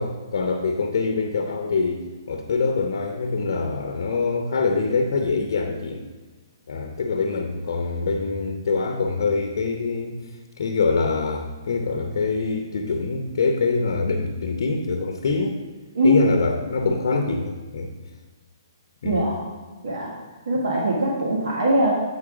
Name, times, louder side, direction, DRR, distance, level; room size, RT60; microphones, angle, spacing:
voice 1, 0.0-6.0 6.7-10.2 10.6-15.6 16.0-17.9 19.0-19.2, left 4 dB, 65° left, 4 dB, 0.8 m, -24 dB
voice 2, 19.0-19.4 19.8-20.1 20.5-21.9, right 1 dB, 75° right, -4 dB, 1.7 m, -21 dB
8.3 x 4.9 x 4.8 m, 1.3 s
hypercardioid pair, 145°, 2 cm